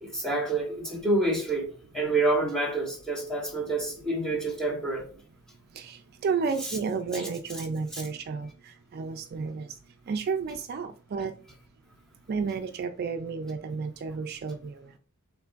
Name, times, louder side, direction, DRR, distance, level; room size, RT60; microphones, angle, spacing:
voice 1, 0.0-5.1 6.6-6.8 7.1-7.3 7.9-8.0, right 2 dB, 5° left, 1.2 m, -28 dB
voice 2, 6.2-8.5 8.9-9.6 10.1-11.3 12.3-14.7, right 5 dB, 45° right, 0.3 m, -31 dB
5.7 x 3.7 x 2.5 m
head